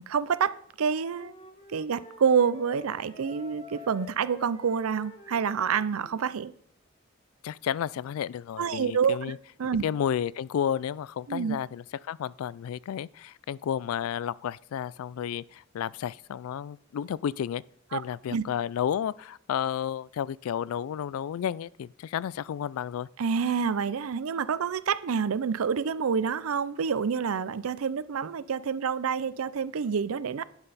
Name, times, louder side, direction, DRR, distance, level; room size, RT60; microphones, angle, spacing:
voice 1, 0.0-1.3 1.7-6.5 8.6-9.2 9.6-9.8 11.3-11.6 17.9-18.0 18.3-18.4 23.2-30.4, right 6 dB, 90° right, 0.5 m, -27 dB
Wind instrument woodwind instrument, 0.9-6.2, left 2 dB, 30° left, 1.2 m, -49 dB
voice 2, 7.4-9.4 9.8-17.6 17.9-23.1, left 9 dB, 85° left, 0.3 m, -32 dB
11.0 x 8.8 x 4.1 m
head